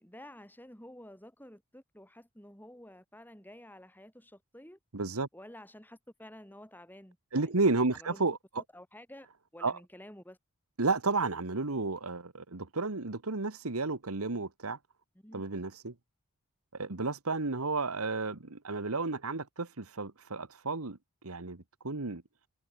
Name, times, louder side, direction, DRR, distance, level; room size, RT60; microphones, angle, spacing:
voice 1, 0.0-4.8 5.3-7.7 7.9-8.2 8.6-9.3 9.5-10.4 15.1-15.4, left 1 dB, 10° left, 7.7 m, -51 dB
voice 2, 4.9-5.3 7.3-8.4 9.6-9.8 10.8-14.8 15.3-15.9 16.7-21.0 21.2-22.2, right 3 dB, 75° right, 1.5 m, -32 dB
head